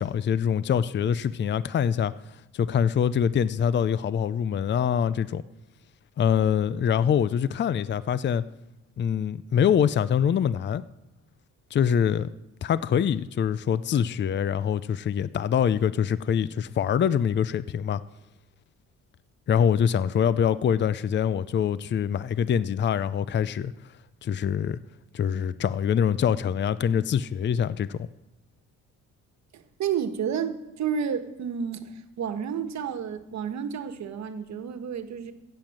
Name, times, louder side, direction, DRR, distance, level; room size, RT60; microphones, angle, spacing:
voice 1, 0.0-2.1 2.5-5.4 6.2-8.4 9.0-10.8 11.7-12.3 12.6-18.0 19.5-23.7 24.2-24.8 25.1-28.1, left 8 dB, 40° left, 0.5 m, -24 dB
voice 2, 29.5-35.3, right 7 dB, 65° right, 1.4 m, -31 dB
15.5 x 7.7 x 7.7 m
cardioid pair, 90°, 30 cm